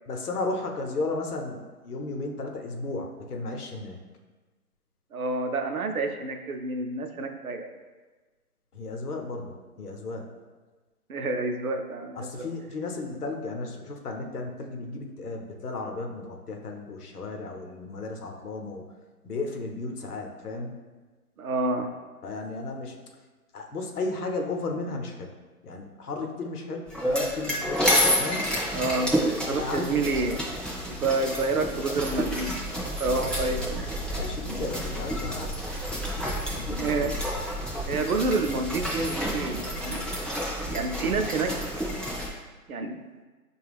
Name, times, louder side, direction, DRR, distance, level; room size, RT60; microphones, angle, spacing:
voice 1, 0.1-4.0 8.7-10.3 12.2-18.8 19.2-20.7 22.2-23.0 23.5-25.3 25.6-27.8 28.2-28.5 29.5-30.0 34.1-35.8 36.5-37.2, left 3 dB, 75° left, 2 dB, 0.8 m, -34 dB
voice 2, 5.1-7.7 11.1-12.5 21.4-21.9 28.7-29.1 29.5-30.4 30.9-32.5 33.0-33.9 36.8-37.1 37.9-40.1 40.6-41.5 42.7-43.0, right 3 dB, 65° right, 5 dB, 0.5 m, -28 dB
sound 1, 26.9-42.3, equal, ahead, 0.3 m, -29 dB
5.2 x 2.3 x 3.4 m, 1.3 s
hypercardioid pair, 175°, 46 cm